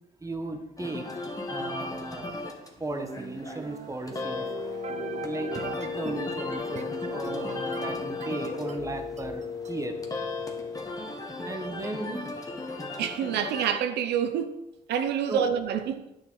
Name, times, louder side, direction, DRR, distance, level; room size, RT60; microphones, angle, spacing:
voice 1, 0.2-2.3 2.8-4.5 5.2-10.2 11.4-12.3 15.3-15.5, right 2 dB, 20° right, 1.4 m, -36 dB
sound 1, 0.8-13.7, left 2 dB, 20° left, 1.6 m, -37 dB
sound 2, 2.9-9.7, right 7 dB, 45° right, 0.8 m, -42 dB
Wind instrument woodwind instrument, 4.1-10.8, left 6 dB, 75° left, 2.5 m, -36 dB
voice 2, 13.0-14.6 14.9-16.1, right 8 dB, 90° right, 0.7 m, -27 dB
9.8 x 6.3 x 4.7 m
cardioid pair, 90°, 17 cm